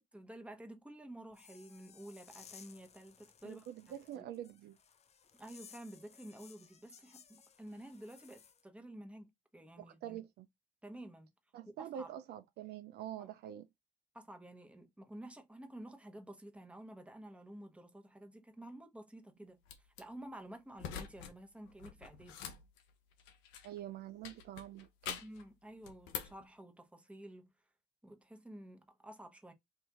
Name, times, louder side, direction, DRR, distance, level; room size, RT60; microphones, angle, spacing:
voice 1, 0.1-3.6 4.1-4.2 5.4-10.2 10.8-11.3 11.8-12.1 13.2-13.3 14.1-19.6 20.0-22.5 25.2-27.5 28.0-29.5, right 1 dB, 5° right, 1.1 m, -51 dB
sound 1, 1.3-8.6, left 7 dB, 35° left, 0.5 m, -60 dB
voice 2, 3.4-4.8 9.8-10.5 11.5-13.7 23.6-25.2, right 11 dB, 60° right, 0.5 m, -46 dB
sound 2, 19.7-20.0 20.8-21.3 21.6-23.8 24.2-25.4 25.8-26.4, left 8 dB, 75° left, 0.7 m, -45 dB
2.7 x 2.6 x 3.5 m
hypercardioid pair, 60°, 19 cm